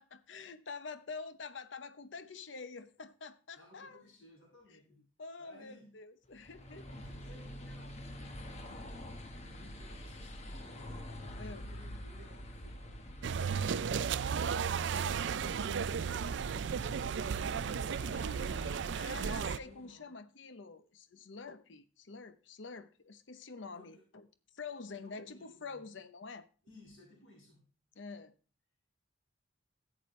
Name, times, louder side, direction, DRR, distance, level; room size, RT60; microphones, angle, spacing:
voice 1, 0.0-4.0 4.7-4.8 5.2-6.9 11.4-11.7 19.0-24.3 24.5-26.5 28.0-28.3, left 4 dB, 65° left, 0.8 m, -47 dB
voice 2, 3.6-5.0 5.4-5.9 6.9-11.0 11.5-13.2 13.5-14.1 15.3-15.9 16.2-18.5 19.5-20.2 23.7-24.0 24.9-25.9 26.6-27.6, left 1 dB, 90° left, 6.8 m, -58 dB
sound 1, 6.3-19.8, equal, 35° left, 1.3 m, -47 dB
sound 2, 13.2-19.6, right 6 dB, 60° right, 0.4 m, -34 dB
14.0 x 8.7 x 3.2 m
head